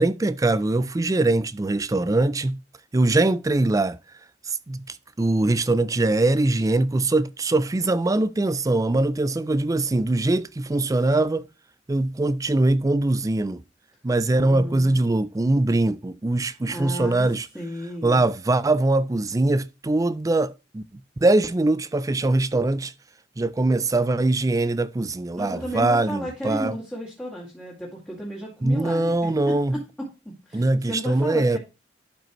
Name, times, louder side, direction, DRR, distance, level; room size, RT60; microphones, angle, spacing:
voice 1, 0.0-2.6 2.9-4.0 4.5-11.4 11.9-13.6 14.0-17.5 18.0-20.8 21.2-22.9 23.4-26.7 28.6-29.7 30.5-31.6, right 2 dB, 20° right, 0.4 m, -22 dB
voice 2, 14.3-15.0 16.7-17.3 17.5-18.2 25.4-29.5 30.0-30.1 30.5-31.6, equal, 10° left, 2.4 m, -33 dB
12.0 x 5.1 x 3.1 m
head